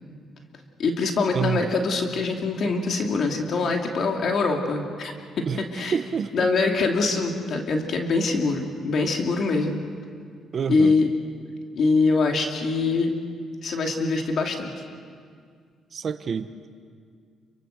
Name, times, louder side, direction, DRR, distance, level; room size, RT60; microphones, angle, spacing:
voice 1, 0.8-6.0 6.3-9.8 10.7-11.1 11.7-13.1 13.6-14.7, left 3 dB, 60° left, 2 dB, 2.7 m, -24 dB
voice 2, 1.3-1.7 5.5-6.5 10.5-10.9 15.9-16.5, right 7 dB, 50° right, 9 dB, 1.0 m, -28 dB
29.0 x 24.0 x 6.6 m, 2.1 s
cardioid pair, 90°, 0 cm